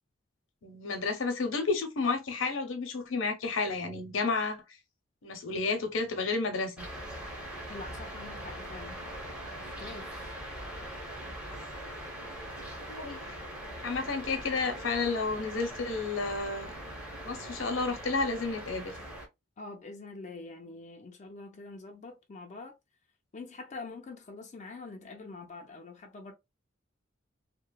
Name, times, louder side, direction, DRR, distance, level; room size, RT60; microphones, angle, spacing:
voice 1, 0.6-4.6 5.2-6.8 12.9-13.4 13.8-16.7 17.2-18.9, left 4 dB, 75° left, 0.7 m, -31 dB
sound 1, 6.8-19.3, right 1 dB, 5° right, 0.7 m, -41 dB
voice 2, 7.7-9.0 9.6-10.1 19.6-22.8 23.3-26.3, left 3 dB, 35° left, 0.4 m, -45 dB
2.9 x 2.1 x 2.2 m
head